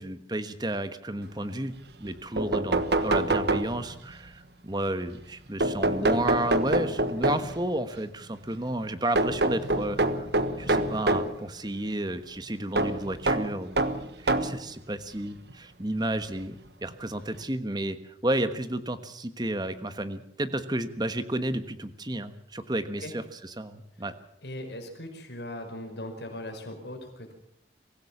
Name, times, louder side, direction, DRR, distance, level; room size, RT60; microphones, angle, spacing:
voice 1, 0.0-1.7 2.0-10.3 10.6-13.8 14.2-16.5 16.8-24.1, right 1 dB, 25° right, 11 dB, 1.3 m, -32 dB
sound 1, 2.0-2.1 2.4-4.1 5.6-7.7 9.2-11.4 12.8-14.6 15.5-15.6 16.9-17.0 17.3-17.4, right 2 dB, 75° right, 1.3 m, -26 dB
voice 2, 24.4-27.3, left 1 dB, 80° left, 3 dB, 5.0 m, -39 dB
24.5 x 15.5 x 7.3 m, 0.72 s
head